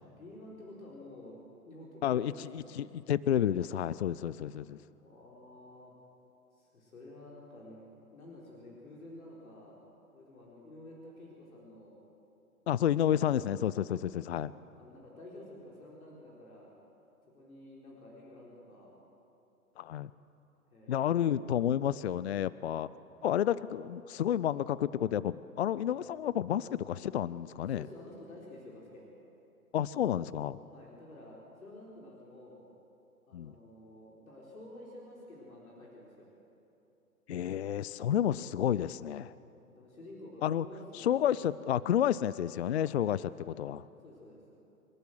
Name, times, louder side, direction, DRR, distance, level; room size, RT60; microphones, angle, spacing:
voice 1, 0.2-1.4 1.6-2.8 5.0-6.0 6.5-9.8 10.1-11.9 12.9-13.0 14.7-16.7 17.3-18.9 20.7-21.3 26.7-26.8 27.6-29.0 30.7-32.6 33.2-36.3 39.7-41.3 43.1-43.3 44.0-44.4, left 1 dB, 65° left, -3 dB, 4.4 m, -50 dB
voice 2, 2.0-4.8 12.7-14.5 19.8-20.1 20.9-22.9 23.2-27.8 29.7-30.6 33.3-33.5 37.3-39.3 40.4-40.6 40.9-43.8, left 10 dB, 50° left, 18 dB, 0.5 m, -30 dB
27.5 x 13.0 x 7.8 m, 2.9 s
figure-of-eight pair, 120°, 45 cm